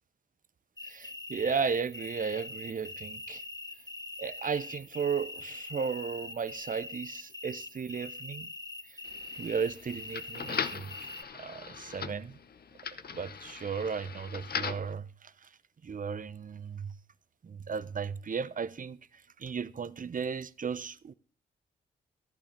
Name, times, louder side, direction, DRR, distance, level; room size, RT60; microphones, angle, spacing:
sound 1, 0.8-11.2, left 2 dB, 20° left, 1.7 m, -43 dB
voice 1, 0.8-3.4 4.2-8.5 8.9-9.0 9.3-10.9 11.3-12.4 13.1-15.5 15.8-16.9 17.4-21.1, right 6 dB, 40° right, 0.7 m, -35 dB
sound 2, 9.0-14.9, left 6 dB, 50° left, 0.8 m, -39 dB
13.0 x 11.5 x 3.3 m
supercardioid pair, 40°, 20 cm